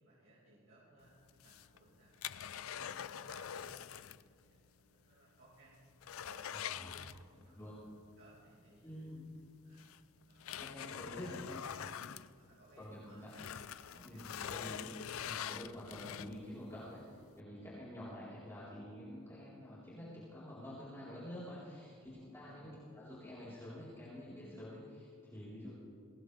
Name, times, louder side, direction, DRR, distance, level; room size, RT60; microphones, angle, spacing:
voice 1, 0.0-2.1 2.4-5.8 6.2-7.8 8.2-9.0 9.6-9.9 10.3-10.6 10.9-11.9 12.2-14.5 21.9-22.2 22.4-22.9, right 1 dB, 80° right, -7 dB, 5.4 m, -64 dB
sound 1, 1.3-4.3 4.5-4.6 5.1-5.2 5.6-7.6 9.0-9.1 9.8-12.9 13.2-16.6 17.1-17.2, left 9 dB, 85° left, 0.5 m, -44 dB
voice 2, 6.5-6.9 7.5-7.7 8.8-9.3 10.6-11.6 12.8-13.3 13.9-14.9 15.2-25.8, left 1 dB, 15° left, -10 dB, 4.2 m, -48 dB
22.0 x 19.5 x 3.5 m, 2.4 s
head